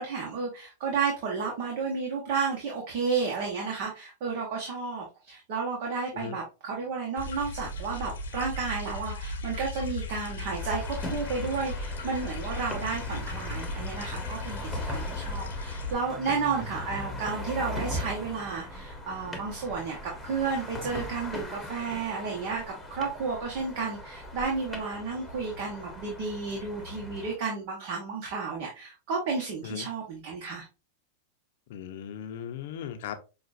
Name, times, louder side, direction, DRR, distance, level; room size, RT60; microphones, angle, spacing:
voice 1, 0.0-30.7, right 5 dB, 55° right, 1.2 m, -32 dB
sound 1, 7.2-15.9, left 2 dB, 90° left, 1.1 m, -36 dB
sound 2, 10.6-27.4, left 1 dB, 5° left, 1.1 m, -39 dB
voice 2, 31.7-33.2, left 8 dB, 65° left, 0.7 m, -38 dB
5.9 x 2.4 x 2.5 m
hypercardioid pair, 120°, 0 cm